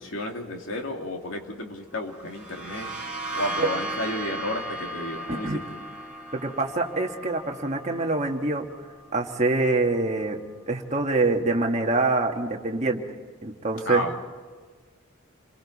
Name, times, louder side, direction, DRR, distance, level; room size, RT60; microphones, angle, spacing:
voice 1, 0.0-2.9 3.3-5.6 13.8-14.2, left 1 dB, 65° left, 2 dB, 2.7 m, -32 dB
sound 1, 2.1-9.7, right 1 dB, 5° right, 3.2 m, -36 dB
voice 2, 6.3-8.7 9.1-10.4 10.7-13.0 13.4-14.0, right 2 dB, 35° right, 1 dB, 1.6 m, -25 dB
29.5 x 22.0 x 4.2 m, 1.5 s
head